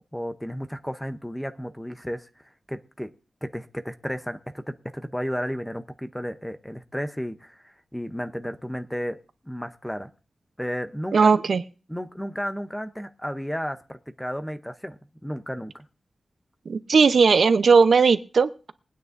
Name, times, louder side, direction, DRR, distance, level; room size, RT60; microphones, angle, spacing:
voice 1, 0.1-2.3 2.7-3.1 3.4-9.2 9.4-10.1 10.6-11.4 11.9-15.8, equal, 5° left, 9 dB, 0.7 m, -33 dB
voice 2, 11.1-11.6 16.7-18.7, right 5 dB, 75° right, 12 dB, 0.7 m, -18 dB
22.5 x 9.5 x 2.6 m, 0.36 s
wide cardioid pair, 125°, 0 cm